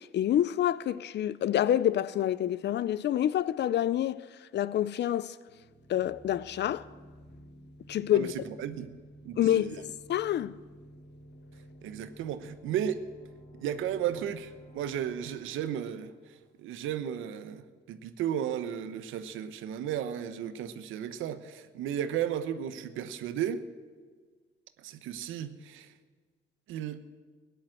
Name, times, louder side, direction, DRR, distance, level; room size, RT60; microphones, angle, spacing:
voice 1, 0.0-4.2 4.5-5.4 5.9-6.9 7.9-8.3 9.4-9.8 10.1-10.6, left 11 dB, 60° left, 0.6 m, -27 dB
sound 1, 5.5-17.0, equal, 40° left, 2.1 m, -53 dB
voice 2, 8.1-8.9 9.2-9.8 11.8-13.0 13.6-16.1 16.6-23.6 24.8-25.9 26.7-27.0, right 9 dB, 90° right, 0.9 m, -34 dB
16.5 x 10.0 x 7.7 m
cardioid pair, 90°, 20 cm